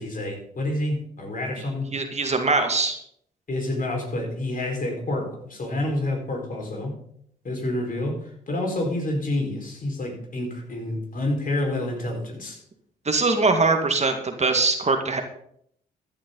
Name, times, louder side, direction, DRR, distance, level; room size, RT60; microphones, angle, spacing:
voice 1, 0.0-1.9 3.5-6.9 7.4-12.6, left 1 dB, 50° left, 1 dB, 4.9 m, -28 dB
voice 2, 1.9-3.0 13.1-15.2, right 3 dB, 40° right, 5 dB, 2.1 m, -22 dB
14.5 x 10.0 x 4.0 m, 0.68 s
hypercardioid pair, 50°, 18 cm